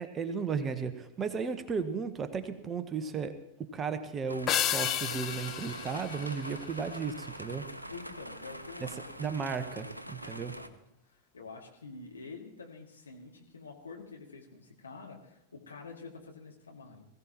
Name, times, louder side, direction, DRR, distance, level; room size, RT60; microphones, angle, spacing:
voice 1, 0.0-7.7 8.8-8.9 9.2-10.5, right 5 dB, 20° right, 10 dB, 1.1 m, -35 dB
sound 1, 4.3-10.7, equal, 85° right, 0.8 m, -44 dB
sound 2, 4.5-7.1, left 11 dB, 30° left, 0.7 m, -33 dB
voice 2, 7.9-9.3 10.3-10.8 11.1-17.1, left 4 dB, 75° left, 0 dB, 2.5 m, -47 dB
21.5 x 15.5 x 3.0 m, 0.83 s
figure-of-eight pair, 90°, 0 cm